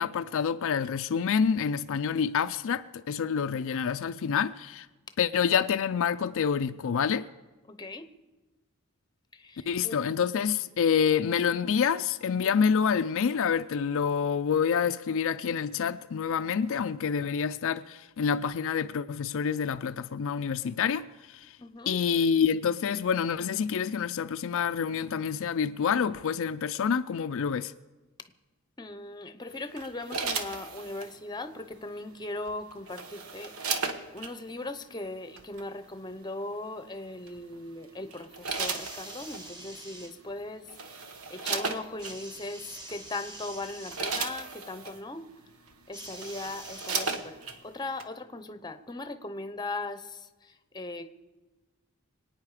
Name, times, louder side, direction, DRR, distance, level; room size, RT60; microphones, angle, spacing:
voice 1, 0.0-4.9 5.2-7.3 9.7-21.6 21.9-27.7, left 7 dB, 65° left, 0.4 m, -27 dB
voice 2, 7.7-8.1 9.3-10.0 21.6-22.0 28.8-45.3 45.9-51.1, left 2 dB, 20° left, 0.8 m, -39 dB
sound 1, 29.8-31.1 32.5-34.3 35.4-35.6 37.3-37.6 38.1-39.5 40.3-40.4 40.7-42.2 42.9-43.1 43.5-45.0 45.7-45.8 46.0-47.6 48.0-48.1, right 4 dB, 75° right, 1.2 m, -35 dB
sound 2, 38.4-40.1 42.0-44.0 45.9-47.6 48.6-48.7, right 1 dB, 20° right, 1.7 m, -45 dB
25.5 x 9.3 x 4.9 m
head